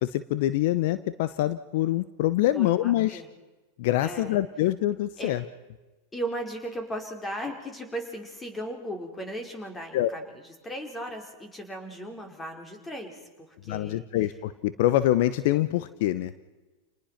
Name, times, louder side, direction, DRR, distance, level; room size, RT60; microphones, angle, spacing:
voice 1, 0.0-3.2 3.8-5.4 9.9-10.1 13.7-16.3, left 14 dB, 65° left, 15 dB, 0.8 m, -25 dB
voice 2, 2.5-3.3 4.0-4.4 5.2-5.4 6.1-14.3, right 1 dB, 15° left, 5 dB, 5.2 m, -37 dB
29.5 x 20.0 x 5.9 m, 1.2 s
hypercardioid pair, 105°, 0 cm